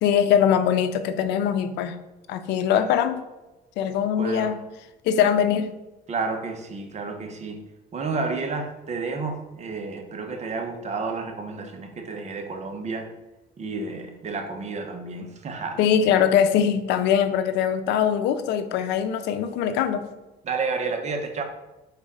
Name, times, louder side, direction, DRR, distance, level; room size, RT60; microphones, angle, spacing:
voice 1, 0.0-2.0 2.3-3.2 3.8-4.6 5.0-5.7 15.8-20.1, left 8 dB, 90° left, 10 dB, 0.6 m, -22 dB
voice 2, 4.2-4.5 6.1-7.6 7.9-13.1 13.6-15.8 20.4-21.4, right 4 dB, 40° right, 4 dB, 1.0 m, -31 dB
4.9 x 4.0 x 5.5 m, 1.0 s
cardioid pair, 110°, 17 cm